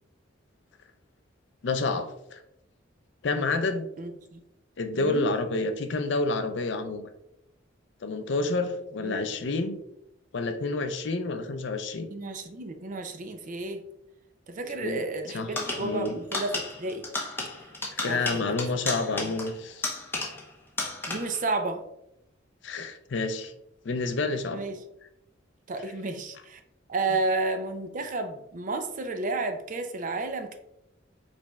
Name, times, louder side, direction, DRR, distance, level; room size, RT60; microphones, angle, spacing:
voice 1, 1.6-2.4 3.2-3.9 4.8-7.1 8.0-9.8 10.3-12.1 14.8-15.0 15.3-15.5 15.8-16.1 17.9-19.9 22.6-23.5 23.8-24.6, left 3 dB, 60° left, 8 dB, 0.5 m, -29 dB
voice 2, 4.0-4.4 5.0-5.3 9.0-9.2 12.1-13.8 14.5-17.1 18.0-18.6 19.2-19.3 21.1-21.8 24.5-24.8 25.7-26.6 26.9-30.6, right 3 dB, 40° right, 6 dB, 0.4 m, -32 dB
sound 1, 15.6-20.5 20.8-21.5, left 2 dB, 10° left, 0.8 m, -33 dB
5.0 x 4.1 x 2.3 m, 0.82 s
head